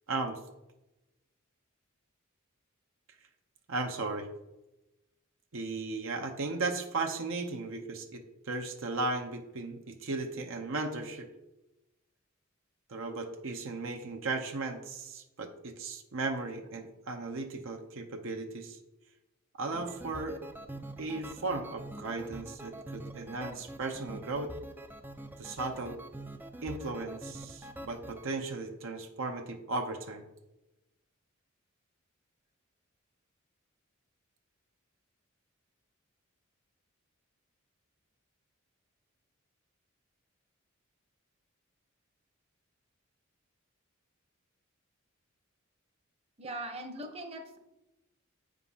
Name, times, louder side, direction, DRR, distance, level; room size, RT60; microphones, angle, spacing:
voice 1, 0.1-0.4 3.7-4.3 5.5-11.3 12.9-18.8 19.6-20.4 21.0-24.5 25.4-26.0 26.6-30.2, right 3 dB, 65° right, 4 dB, 0.7 m, -36 dB
sound 1, 19.6-28.3, right 1 dB, 10° right, 0.3 m, -45 dB
voice 2, 46.4-47.6, right 1 dB, 30° right, 3 dB, 0.9 m, -40 dB
8.3 x 3.7 x 5.5 m, 0.99 s
head